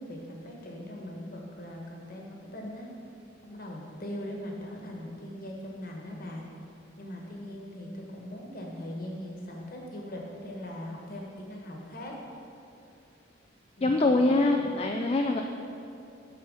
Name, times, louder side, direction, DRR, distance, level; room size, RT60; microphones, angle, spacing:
voice 1, 0.0-2.9 3.4-6.5 7.0-12.2 13.8-14.3, left 1 dB, 45° left, -1 dB, 1.3 m, -40 dB
voice 2, 13.8-15.4, left 2 dB, 30° left, 2 dB, 0.3 m, -24 dB
9.2 x 4.4 x 6.3 m, 2.6 s
head